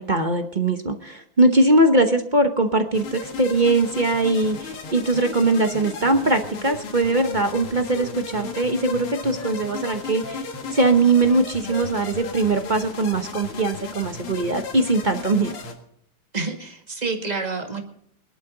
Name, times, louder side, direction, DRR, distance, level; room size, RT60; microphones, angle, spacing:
voice 1, 0.0-15.6, right 2 dB, 45° right, 6 dB, 0.6 m, -21 dB
sound 1, 2.9-15.7, left 5 dB, 85° left, 2.7 m, -35 dB
Wind instrument woodwind instrument, 7.1-9.0 9.3-10.5 10.8-11.4 11.7-12.4 12.6-12.8 13.1-13.7 14.0-14.2, left 3 dB, 30° left, 1.0 m, -40 dB
voice 2, 16.3-17.8, right 4 dB, 20° right, 3 dB, 1.9 m, -28 dB
22.0 x 11.5 x 3.9 m, 0.69 s
omnidirectional pair, 2.3 m